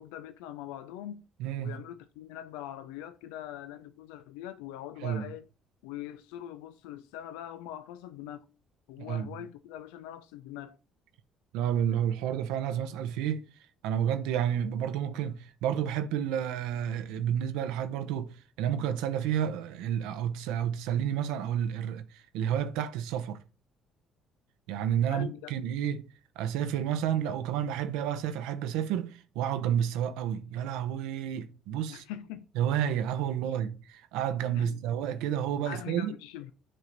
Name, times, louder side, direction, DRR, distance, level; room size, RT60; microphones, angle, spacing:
voice 1, 0.0-1.3 1.6-5.5 5.8-8.4 8.9-10.8 25.1-25.5 31.9-32.5 33.4-33.6 34.5-34.8 35.6-36.5, left 12 dB, 90° left, 0.3 m, -42 dB
voice 2, 1.4-1.8 5.0-5.3 9.0-9.3 11.5-13.4 13.8-23.4 24.7-26.1 26.4-32.0 32.6-36.1, right 9 dB, 85° right, 0.6 m, -30 dB
7.7 x 3.2 x 3.9 m
supercardioid pair, 70°, 0 cm